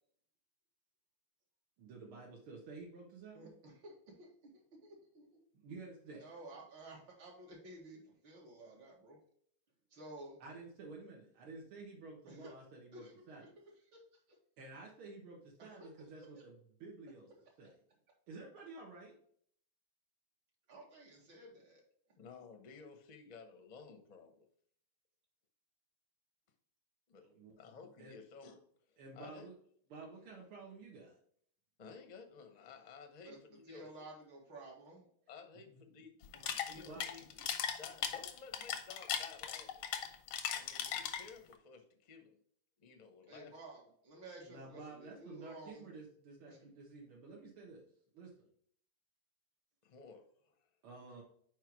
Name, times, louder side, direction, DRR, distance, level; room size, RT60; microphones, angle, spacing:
voice 1, 1.8-3.5 5.5-6.3 10.4-13.5 14.6-17.3 17.6-17.7 18.3-19.2 27.2-27.6 28.0-28.1 29.0-29.6 29.9-31.2 35.7-35.8 36.9-37.1 44.4-47.9 48.1-48.5 50.8-51.2, right 3 dB, 90° right, -3 dB, 2.2 m, -51 dB
voice 2, 3.3-5.4 6.1-9.2 9.9-10.4 12.3-12.5 12.9-13.5 13.9-14.0 14.3-14.4 15.6-16.4 20.7-21.8 33.2-35.1 36.4-36.8 37.4-37.5 43.3-45.9 46.5-46.7, right 1 dB, 65° right, -2 dB, 2.2 m, -54 dB
voice 3, 22.2-24.4 27.1-27.2 27.6-28.6 28.9-29.5 31.8-33.9 35.3-37.2 37.8-40.1 40.5-42.4 42.8-43.5 49.8-50.6, left 5 dB, 40° left, 5 dB, 0.5 m, -55 dB
sound 1, 36.2-41.5, left 8 dB, 90° left, 1.6 m, -38 dB
5.6 x 4.7 x 4.6 m, 0.62 s
omnidirectional pair, 2.3 m